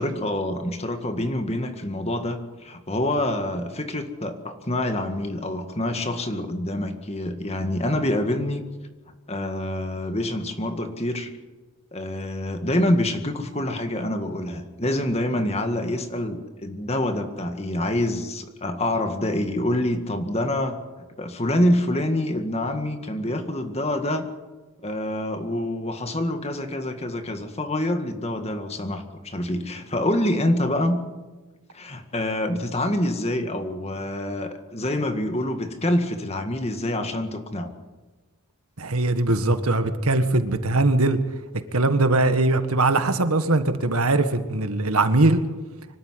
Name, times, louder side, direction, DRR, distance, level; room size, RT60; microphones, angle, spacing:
voice 1, 0.0-8.6 9.3-11.3 11.9-20.8 21.2-24.3 24.8-31.0 31.7-37.7, left 1 dB, 30° left, 7 dB, 1.9 m, -26 dB
voice 2, 38.8-41.2 41.7-45.4, right 2 dB, 80° right, 9 dB, 1.7 m, -21 dB
25.0 x 12.5 x 9.7 m, 1.2 s
head